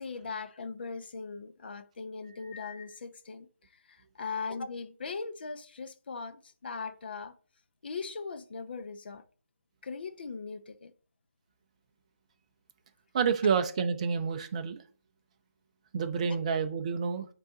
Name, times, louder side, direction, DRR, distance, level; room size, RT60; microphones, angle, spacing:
voice 1, 0.0-3.5 3.9-7.3 7.8-9.2 9.8-10.9 16.3-16.4, left 4 dB, 40° left, 0.7 m, -39 dB
voice 2, 13.1-14.8 15.9-17.3, right 6 dB, 25° right, 0.6 m, -29 dB
9.2 x 3.9 x 3.8 m
figure-of-eight pair, 155°, 8 cm